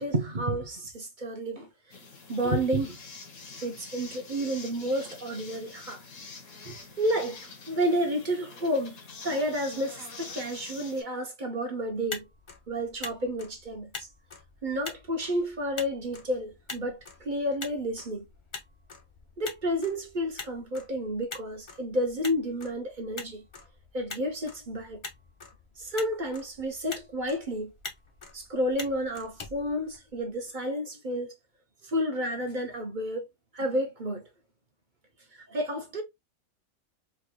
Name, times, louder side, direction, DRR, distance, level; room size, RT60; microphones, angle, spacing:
voice 1, 0.0-1.7 2.3-3.0 3.6-6.0 6.6-7.4 7.7-12.3 12.7-14.1 14.6-18.2 19.4-23.4 23.9-25.0 25.8-27.7 28.3-31.3 31.8-33.3 33.5-34.2 35.5-36.0, equal, 40° right, 0.9 m, -31 dB
sound 1, 1.9-11.0, left 4 dB, 85° left, 1.8 m, -46 dB
Motor vehicle (road), 11.9-30.4, left 4 dB, 30° left, 0.5 m, -45 dB
4.3 x 3.2 x 2.2 m
omnidirectional pair, 1.5 m